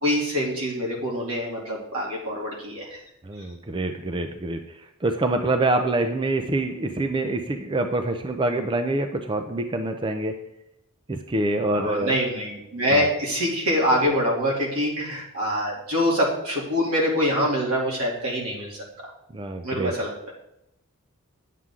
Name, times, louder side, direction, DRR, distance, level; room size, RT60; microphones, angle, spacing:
voice 1, 0.0-3.0 11.7-18.8 19.6-20.3, equal, 85° right, -3 dB, 2.8 m, -25 dB
voice 2, 3.2-4.6 5.0-10.3 11.1-12.2 12.9-13.0 19.3-19.9, right 2 dB, 20° right, 6 dB, 0.5 m, -25 dB
9.5 x 7.5 x 3.7 m, 0.83 s
head